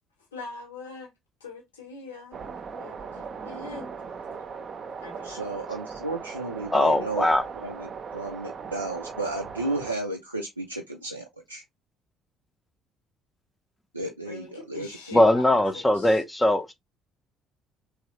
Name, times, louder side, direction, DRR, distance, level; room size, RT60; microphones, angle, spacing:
voice 1, 0.3-1.1 1.4-3.9 5.0-5.4 14.3-16.2, left 3 dB, 80° left, 1.0 m, -42 dB
sound 1, 2.3-9.9, right 5 dB, 45° right, 0.6 m, -39 dB
voice 2, 5.2-7.3 7.6-11.6 13.9-15.2, right 2 dB, 90° right, 0.3 m, -33 dB
voice 3, 6.7-7.4 15.1-16.7, left 1 dB, 15° left, 0.5 m, -21 dB
3.1 x 2.2 x 2.9 m
figure-of-eight pair, 50°, 0 cm